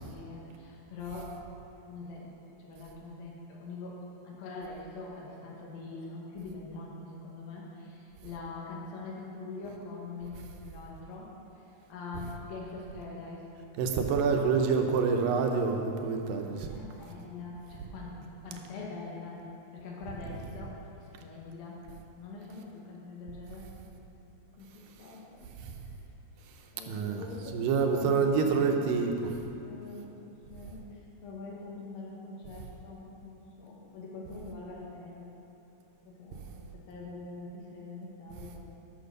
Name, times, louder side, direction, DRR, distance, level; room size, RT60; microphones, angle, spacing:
voice 1, 0.0-1.4 1.9-2.3 2.6-13.5 16.4-19.4 19.7-21.8 22.1-23.7 24.6-25.5 26.7-28.8 29.6-35.4 36.1-36.5 36.7-38.6, left 3 dB, 85° left, -3 dB, 3.2 m, -44 dB
voice 2, 13.8-16.7 25.6-25.8 26.9-27.3 27.5-29.4, right 5 dB, 80° right, 3 dB, 2.4 m, -27 dB
12.0 x 6.4 x 6.5 m, 2.8 s
omnidirectional pair, 4.1 m